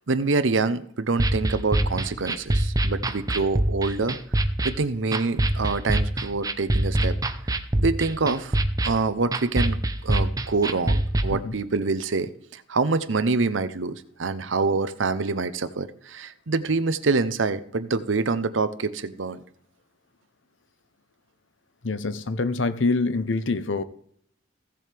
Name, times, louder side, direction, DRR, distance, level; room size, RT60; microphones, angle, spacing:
voice 1, 0.1-4.2 4.6-7.2 7.8-8.6 8.8-19.4, right 3 dB, 85° right, 0.8 m, -26 dB
sound 1, 1.2-11.2, right 1 dB, 20° right, 0.7 m, -25 dB
voice 2, 21.8-23.8, left 3 dB, 80° left, 0.8 m, -25 dB
16.0 x 7.6 x 3.4 m
head